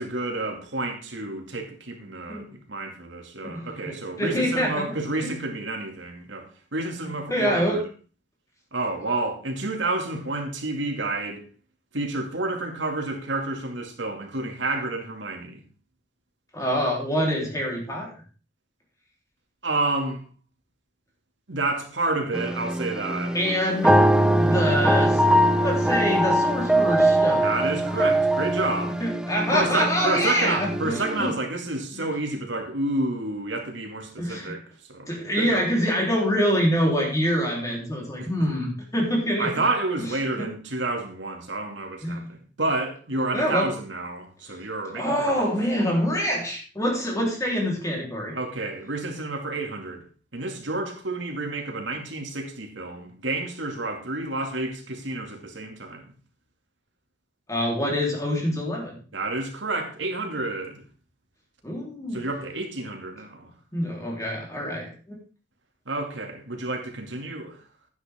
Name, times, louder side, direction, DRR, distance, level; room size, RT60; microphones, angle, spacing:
voice 1, 0.0-7.9 8.7-11.4 11.9-15.6 19.6-20.2 21.5-23.4 27.4-29.0 29.5-34.6 34.9-35.7 38.2-38.5 39.4-45.5 48.3-50.0 50.3-56.1 59.1-60.8 62.1-63.5 65.9-67.6, right 2 dB, 85° right, 2.4 m, -30 dB
voice 2, 3.4-5.0 7.3-7.8 16.5-18.1 23.3-24.0 24.3-25.2 25.6-27.5 29.0-31.3 34.2-34.6 35.1-39.5 40.4-40.5 42.0-42.3 43.3-43.7 44.9-48.4 57.5-59.0 61.6-62.2 63.7-65.2, equal, 20° left, 3.8 m, -25 dB
sound 1, 22.3-31.3, right 1 dB, 5° right, 0.6 m, -22 dB
11.0 x 9.8 x 3.7 m
head